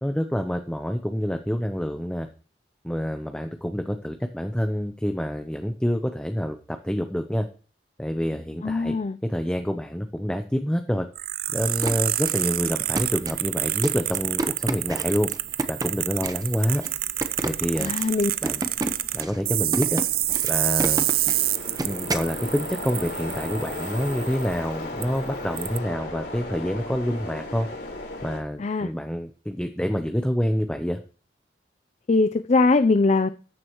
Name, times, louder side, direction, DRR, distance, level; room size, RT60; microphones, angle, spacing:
voice 1, 0.0-2.3 2.8-7.5 8.0-8.9 9.2-11.1 11.5-15.3 15.7-16.8 17.4-17.9 18.4-18.6 19.1-20.0 20.5-21.1 21.8-27.7 28.2-31.0, equal, 5° left, 6 dB, 0.7 m, -27 dB
voice 2, 8.6-9.2 17.8-18.3 28.6-28.9 32.1-33.3, left 3 dB, 40° left, 12 dB, 0.4 m, -21 dB
sound 1, 11.1-24.5 25.0-25.1 25.6-25.8, right 15 dB, 55° right, 0.5 m, -28 dB
sound 2, 11.6-22.3, right 1 dB, 20° right, 1.0 m, -32 dB
sound 3, 14.6-28.4, left 2 dB, 70° left, 4.7 m, -37 dB
14.0 x 9.7 x 3.1 m, 0.38 s
head